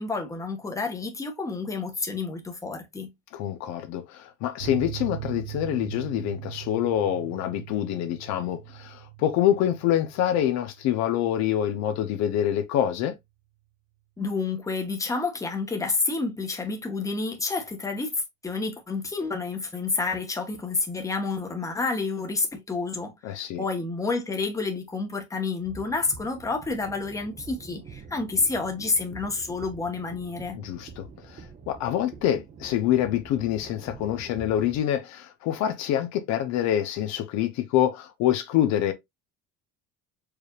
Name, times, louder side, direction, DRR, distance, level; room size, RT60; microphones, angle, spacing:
voice 1, 0.0-3.1 14.2-30.6, left 3 dB, 10° left, 1.0 m, -29 dB
voice 2, 3.3-13.1 23.2-23.6 30.6-38.9, left 11 dB, 60° left, 0.7 m, -26 dB
sound 1, 4.6-11.7 12.0-12.1 12.4-12.5, right 16 dB, 80° right, 0.7 m, -40 dB
sound 2, 25.6-34.8, right 5 dB, 25° right, 0.7 m, -46 dB
4.7 x 3.2 x 2.3 m
cardioid pair, 130°, 30 cm